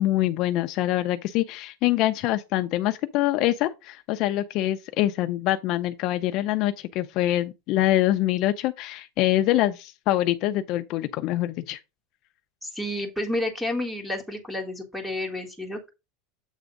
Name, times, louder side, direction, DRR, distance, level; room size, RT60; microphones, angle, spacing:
voice 1, 0.0-11.8, left 14 dB, 45° left, 0.5 m, -24 dB
voice 2, 12.6-15.9, left 1 dB, ahead, 1.6 m, -30 dB
8.1 x 3.5 x 5.2 m
supercardioid pair, 155°, 0 cm